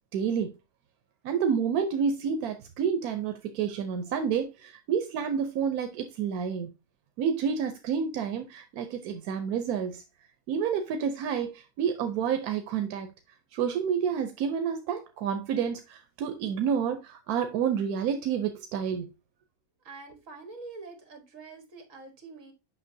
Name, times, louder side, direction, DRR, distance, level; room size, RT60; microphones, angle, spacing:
voice 1, 0.1-0.5 1.2-6.7 7.2-10.0 10.5-13.1 13.5-19.1, right 7 dB, 85° right, 1.2 m, -29 dB
voice 2, 19.8-22.5, right 3 dB, 60° right, 1.9 m, -45 dB
7.4 x 5.6 x 2.6 m
omnidirectional pair, 1.5 m